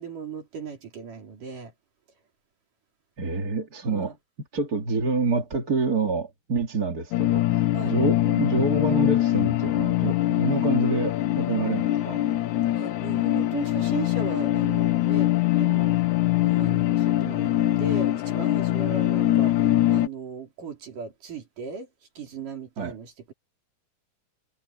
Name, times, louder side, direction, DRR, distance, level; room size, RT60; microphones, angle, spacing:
voice 1, 0.0-1.7 3.8-4.2 7.7-7.9 12.7-16.0 16.4-21.9 22.2-23.3, right 6 dB, 90° right, 5.5 m, -37 dB
voice 2, 3.2-4.1 4.5-12.2 22.8-23.0, right 3 dB, 35° right, 2.3 m, -27 dB
sound 1, 7.1-20.1, left 15 dB, 80° left, 2.2 m, -23 dB
omnidirectional pair, 3.6 m